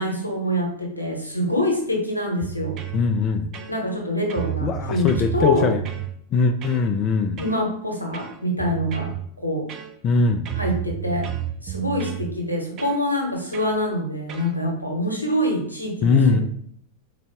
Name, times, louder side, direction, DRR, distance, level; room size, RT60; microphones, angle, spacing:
voice 1, 0.0-2.8 3.7-5.7 7.4-9.7 10.5-11.3 11.6-16.4, left 1 dB, 90° left, 0 dB, 0.9 m, -25 dB
sound 1, 2.4-3.0 3.5-4.0 4.3-6.1 6.6-6.9 7.4-7.6 8.1-9.2 9.7-10.2 10.5-12.3 12.8-13.0 13.5-13.8 14.3-14.5, right 12 dB, 35° right, 0.5 m, -31 dB
voice 2, 2.9-3.5 4.6-5.8 6.3-7.4 10.0-10.5 16.0-16.4, left 4 dB, 30° left, 6 dB, 0.3 m, -21 dB
3.9 x 2.5 x 3.4 m, 0.63 s
figure-of-eight pair, 90°, 0 cm